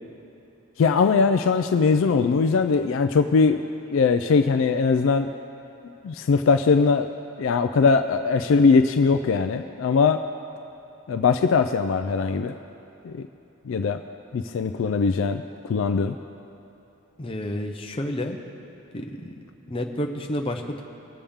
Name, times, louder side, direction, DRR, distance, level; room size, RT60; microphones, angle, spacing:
voice 1, 0.8-3.6 3.9-5.3 6.0-7.1 7.4-10.2 11.1-12.6 13.0-13.1 13.7-14.0 14.3-15.4 15.7-16.1, left 5 dB, 60° left, 8 dB, 0.3 m, -20 dB
voice 2, 17.2-18.4 18.9-19.3 19.7-20.8, left 1 dB, 25° left, 2 dB, 0.6 m, -30 dB
20.0 x 7.1 x 3.5 m, 2.8 s
head